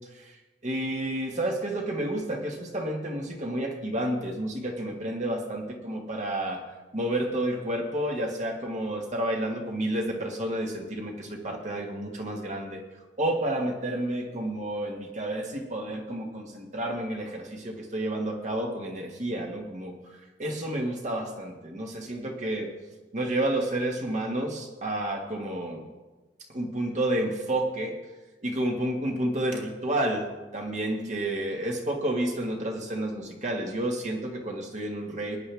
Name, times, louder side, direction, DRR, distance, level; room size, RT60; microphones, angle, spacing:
voice 1, 0.6-6.6 6.9-12.8 13.2-19.9 20.4-22.7 23.1-25.8 26.5-27.9 28.4-30.3 30.5-35.4, right 1 dB, 40° right, 1 dB, 1.7 m, -30 dB
19.0 x 10.0 x 3.5 m, 1.2 s
head